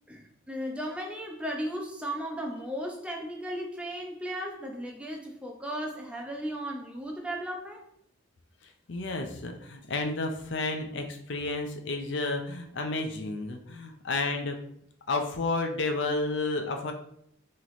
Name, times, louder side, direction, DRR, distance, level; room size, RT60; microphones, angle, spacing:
voice 1, 0.1-7.9, equal, 5° right, 0 dB, 0.4 m, -36 dB
voice 2, 8.9-14.6 15.1-16.9, left 3 dB, 60° left, 4 dB, 0.5 m, -31 dB
3.1 x 3.0 x 4.0 m, 0.70 s
head